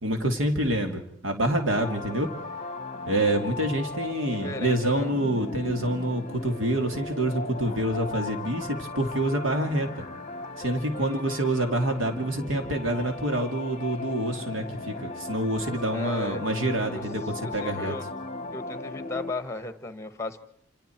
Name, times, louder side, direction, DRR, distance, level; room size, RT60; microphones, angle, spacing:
voice 1, 0.0-2.3 3.1-10.0 10.6-17.9, right 1 dB, 90° right, 4 dB, 2.5 m, -27 dB
sound 1, 1.7-19.3, left 3 dB, 35° left, 1.1 m, -37 dB
voice 2, 4.3-5.1 10.9-11.5 15.9-16.4 16.9-17.0 17.4-18.1 18.5-20.4, left 2 dB, 15° left, 10 dB, 1.4 m, -36 dB
28.0 x 26.5 x 4.6 m, 0.67 s
head